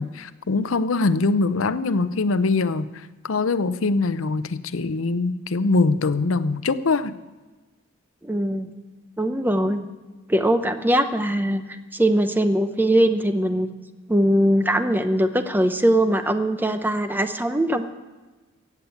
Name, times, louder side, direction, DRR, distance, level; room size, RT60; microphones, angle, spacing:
voice 1, 0.0-2.9 3.2-7.1, left 3 dB, 70° left, 13 dB, 0.6 m, -22 dB
voice 2, 8.2-8.7 9.2-9.8 10.3-11.6 11.9-13.7 14.1-17.9, right 1 dB, 10° right, 9 dB, 0.8 m, -21 dB
15.0 x 8.1 x 8.3 m, 1.2 s
head